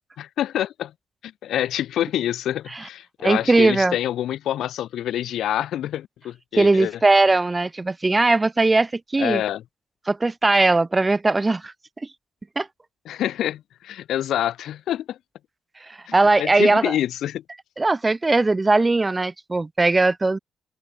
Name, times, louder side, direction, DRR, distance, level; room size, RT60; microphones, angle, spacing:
voice 1, 0.2-0.9 1.2-7.0 9.2-9.6 13.0-15.2 16.1-17.4, left 12 dB, 80° left, 0.8 m, -27 dB
voice 2, 3.2-3.9 6.5-9.4 10.1-11.7 12.6-12.7 15.9-16.9 17.8-20.4, right 3 dB, 25° right, 0.3 m, -19 dB
open air
supercardioid pair, 60°, 0 cm